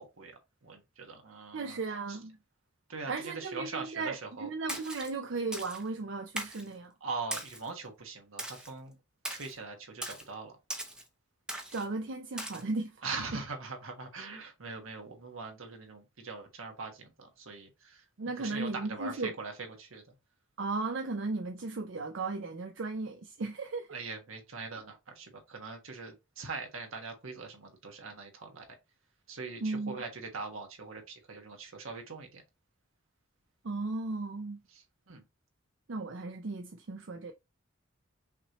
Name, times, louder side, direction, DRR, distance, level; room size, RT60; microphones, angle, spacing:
voice 1, 0.0-1.8 2.9-4.5 7.0-9.0 9.3-10.5 13.0-18.0 18.4-20.0 23.9-28.6 29.3-32.4 34.7-35.2, right 4 dB, 80° right, 1.4 m, -42 dB
voice 2, 1.5-2.4 3.1-6.9 11.7-13.4 18.2-19.3 20.6-23.9 29.6-30.0 33.6-34.6 35.9-37.3, right 3 dB, 60° right, 0.5 m, -36 dB
Splash splatter, 4.7-5.1 5.5-5.8 6.4-6.7 7.3-7.7 8.4-8.7 9.2-9.5 10.0-10.2 10.7-11.0 11.5-11.8 12.4-12.6, right 1 dB, 5° right, 0.6 m, -39 dB
5.8 x 3.0 x 3.0 m
head